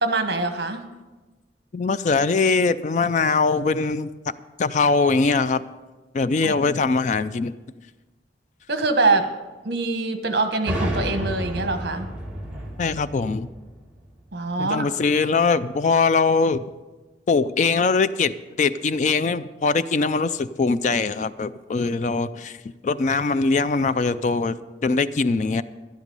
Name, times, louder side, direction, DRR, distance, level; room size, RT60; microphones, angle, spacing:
voice 1, 0.0-0.8 6.4-6.8 8.7-9.3 9.6-12.1 14.3-14.9, right 3 dB, 55° right, 7 dB, 1.2 m, -24 dB
voice 2, 1.7-4.1 4.6-5.6 6.1-7.5 12.8-13.5 14.6-16.6 17.3-22.6 22.8-25.6, left 4 dB, 40° left, 14 dB, 0.3 m, -22 dB
sound 1, 10.7-14.3, equal, 5° right, 2.0 m, -31 dB
11.5 x 11.0 x 5.4 m, 1.2 s
head